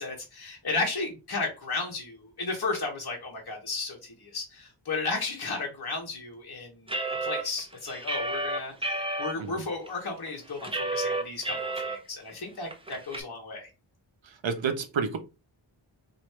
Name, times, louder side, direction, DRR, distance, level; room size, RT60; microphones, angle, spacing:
voice 1, 0.0-6.9 7.2-13.7, left 3 dB, 50° left, 1.3 m, -34 dB
sound 1, 6.9-9.3 9.9-10.0 10.3-12.0 12.3-12.4 12.7-13.2, right 2 dB, 10° right, 0.7 m, -31 dB
voice 2, 14.2-15.2, right 6 dB, 65° right, 0.8 m, -30 dB
3.1 x 2.8 x 4.3 m
wide cardioid pair, 65°, 49 cm